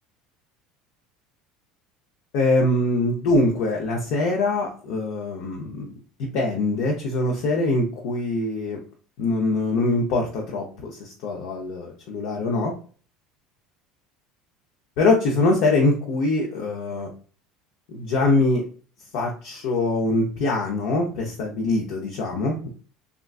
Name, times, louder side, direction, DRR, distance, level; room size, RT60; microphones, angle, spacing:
voice 1, 2.3-5.9 6.3-8.8 9.2-12.7 15.0-17.1 17.9-18.6 19.1-22.7, left 2 dB, 65° left, 0 dB, 0.6 m, -23 dB
3.6 x 2.3 x 2.3 m, 0.41 s
cardioid pair, 135°, 0 cm